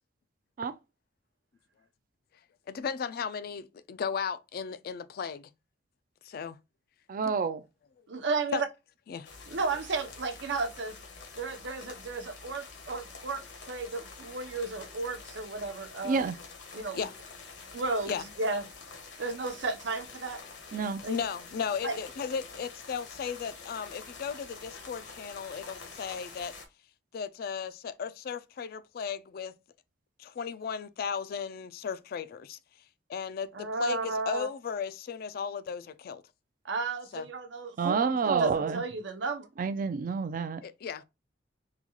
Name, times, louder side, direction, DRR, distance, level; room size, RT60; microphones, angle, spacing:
voice 1, 2.7-5.5 6.2-6.6 8.5-8.6 9.1-9.3 16.9-17.1 18.1-18.2 21.1-26.5 27.1-29.6 30.2-32.6 33.1-36.2 37.1-37.3 40.6-41.0, left 6 dB, 55° left, 0.3 m, -35 dB
voice 2, 7.1-7.6 16.0-16.4 20.7-21.0 37.8-38.8 39.6-40.6, right 5 dB, 45° right, 0.3 m, -28 dB
voice 3, 8.1-8.7 9.5-11.0 11.4-16.3 16.7-17.1 17.7-18.1 18.4-18.6 19.2-20.4 21.0-21.2 21.8-22.0 33.5-34.5 36.6-38.1 38.4-39.5, right 3 dB, 75° right, 0.7 m, -33 dB
sound 1, 9.2-26.7, left 4 dB, 70° left, 0.9 m, -47 dB
3.9 x 2.3 x 2.9 m
head